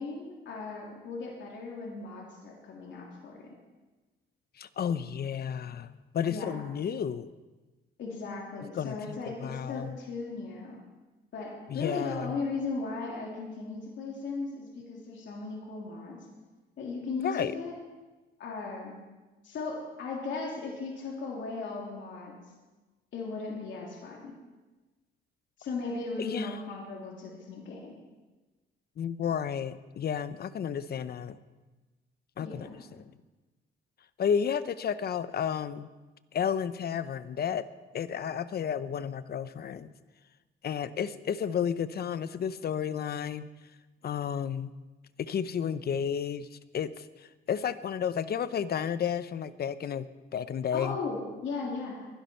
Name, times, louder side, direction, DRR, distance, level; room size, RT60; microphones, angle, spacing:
voice 1, 0.0-3.5 6.3-6.6 8.0-10.8 11.3-16.2 16.8-17.7 18.4-19.0 19.4-22.4 23.1-24.3 25.6-27.9 32.4-32.8 50.7-52.1, left 3 dB, 70° left, -2 dB, 3.2 m, -37 dB
voice 2, 4.6-7.3 8.8-10.0 11.7-12.4 17.2-17.5 26.2-26.6 29.0-31.4 32.4-32.7 33.0-33.1 34.2-35.9 36.3-37.7 37.9-39.9 40.6-43.5 44.0-44.8 45.2-50.1 50.3-51.0, left 8 dB, 50° left, 14 dB, 0.8 m, -32 dB
22.0 x 11.0 x 4.5 m, 1.2 s
cardioid pair, 90°, 20 cm